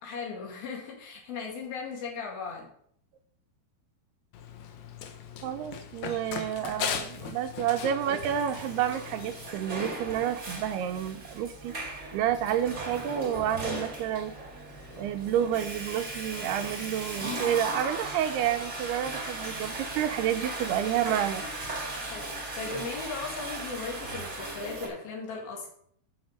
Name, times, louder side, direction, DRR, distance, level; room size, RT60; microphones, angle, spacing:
voice 1, 0.0-2.7 22.1-25.7, left 5 dB, 70° left, -1 dB, 3.9 m, -37 dB
Run, 4.3-9.5, left 8 dB, 85° left, 1.6 m, -38 dB
voice 2, 5.4-11.8 12.1-14.3 15.0-21.4, right 10 dB, 85° right, 8 dB, 2.7 m, -29 dB
Water / Toilet flush, 7.4-24.9, right 2 dB, 25° right, 1.5 m, -37 dB
11.5 x 6.4 x 5.2 m, 0.65 s
omnidirectional pair, 4.6 m